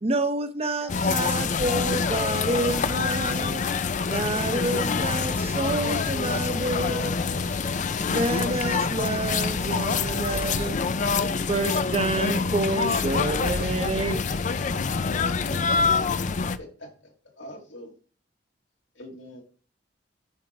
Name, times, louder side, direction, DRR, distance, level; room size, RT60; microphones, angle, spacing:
voice 1, 0.0-3.6 4.1-7.1 8.1-10.8 11.5-14.2 15.5-15.6, right 2 dB, 30° right, 0.9 m, -28 dB
voice 2, 0.8-2.2 2.7-4.4 6.1-8.1 9.7-12.2 13.1-15.0, left 5 dB, 60° left, 1.7 m, -44 dB
sound 1, 0.9-16.6, left 5 dB, 40° left, 0.4 m, -26 dB
voice 3, 16.6-18.0 18.9-19.4, equal, 85° left, 2.8 m, -44 dB
9.0 x 4.5 x 4.8 m
head